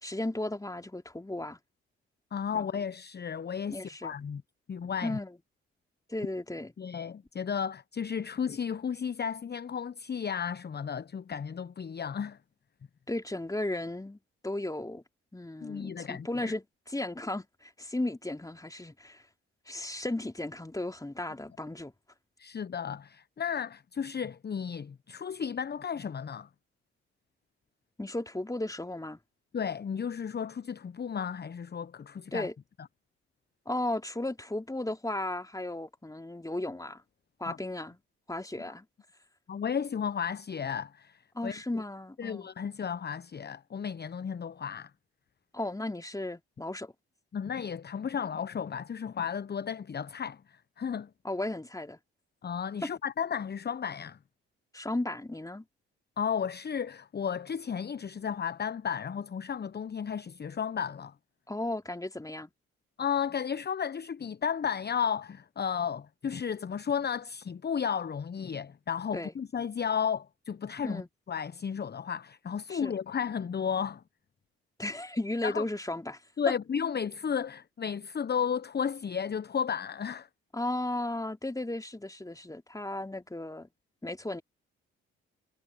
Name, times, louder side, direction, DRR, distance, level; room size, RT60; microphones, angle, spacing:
voice 1, 0.0-1.6 2.5-2.7 3.7-4.1 5.0-5.3 6.1-6.7 13.1-15.0 15.3-19.2 19.7-21.9 28.0-29.2 32.3-32.5 33.6-37.0 37.4-38.0 38.3-38.8 41.3-42.5 45.5-46.9 51.2-52.0 54.7-55.6 61.5-62.5 69.1-69.3 70.8-71.1 72.7-72.9 74.8-76.2 80.5-83.7 84.0-84.4, left 1 dB, 10° left, 3.0 m, -35 dB
voice 2, 2.3-4.4 4.7-5.2 6.8-12.4 15.6-16.5 22.4-26.5 29.5-32.5 37.4-37.6 39.5-41.6 42.2-44.9 47.3-51.1 52.4-54.2 56.2-61.1 63.0-71.0 71.3-74.0 75.4-75.6 76.4-80.3, left 7 dB, 30° left, 1.0 m, -33 dB
hypercardioid pair, 45°, 31 cm